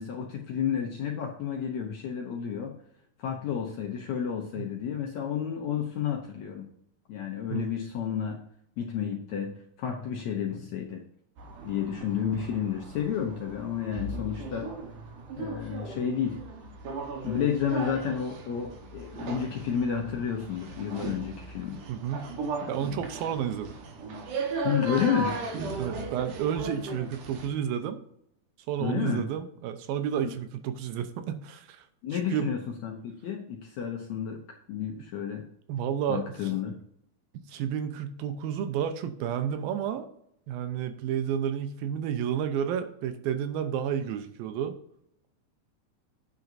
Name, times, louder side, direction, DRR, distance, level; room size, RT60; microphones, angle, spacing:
voice 1, 0.0-2.8 3.2-6.7 7.1-8.4 8.8-11.0 11.6-14.7 15.3-16.4 17.2-21.8 22.6-23.0 24.6-25.4 28.8-29.3 32.0-34.4 34.7-35.5 36.1-36.7, left 8 dB, 75° left, 1 dB, 1.7 m, -31 dB
sound 1, 11.4-27.5, right 3 dB, 65° right, 2.7 m, -37 dB
voice 2, 21.9-22.3 22.7-23.8 25.8-28.0 28.7-31.8 32.1-32.5 35.7-36.5 37.3-40.1 40.5-44.8, right 9 dB, 80° right, 8 dB, 2.6 m, -31 dB
10.5 x 9.3 x 2.7 m, 0.71 s
omnidirectional pair, 4.3 m